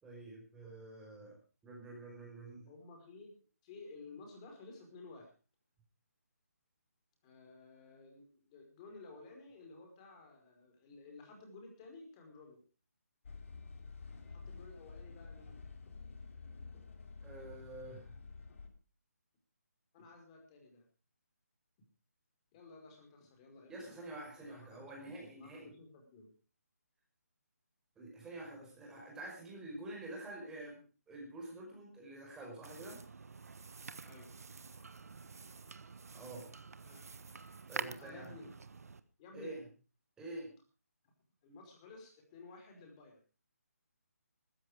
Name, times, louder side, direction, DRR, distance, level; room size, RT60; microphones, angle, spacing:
voice 1, 0.0-1.4 1.6-2.7 17.2-18.2 23.7-25.8 28.0-33.0 36.1-36.5 37.7-38.3 39.3-39.6 40.2-40.5, right 2 dB, 5° right, -1 dB, 5.2 m, -48 dB
voice 2, 2.7-3.3 3.6-5.3 7.2-12.6 14.2-15.7 16.7-16.8 18.6-18.7 19.9-20.8 22.5-24.0 24.3-26.3 34.0-34.3 36.8-37.0 37.8-38.5 39.2-39.7 41.0-41.1 41.4-43.2, left 3 dB, 25° left, 2 dB, 5.2 m, -54 dB
sound 1, 13.2-18.7, left 4 dB, 55° left, 3.4 m, -50 dB
sound 2, 32.6-39.0, right 4 dB, 70° right, 1.3 m, -48 dB
15.5 x 14.0 x 5.0 m, 0.35 s
hypercardioid pair, 160°, 9 cm